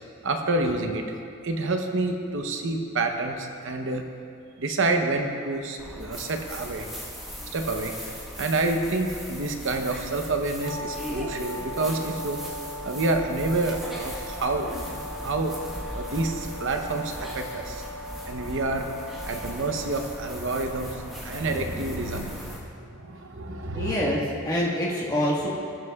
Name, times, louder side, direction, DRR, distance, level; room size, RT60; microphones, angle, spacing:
voice 1, 0.2-1.1 1.4-4.0 4.6-6.9 7.5-7.9 8.4-12.4 12.8-15.5 15.9-17.8 18.2-18.9 19.2-24.2, right 2 dB, 55° right, 4 dB, 0.8 m, -28 dB
sound 1, 5.8-22.6, equal, ahead, 1.3 m, -38 dB
Brass instrument, 10.6-19.6, equal, 75° left, 2.0 m, -39 dB
voice 2, 23.7-25.5, equal, 15° left, -5 dB, 1.5 m, -26 dB
18.5 x 8.0 x 2.4 m, 2.6 s
head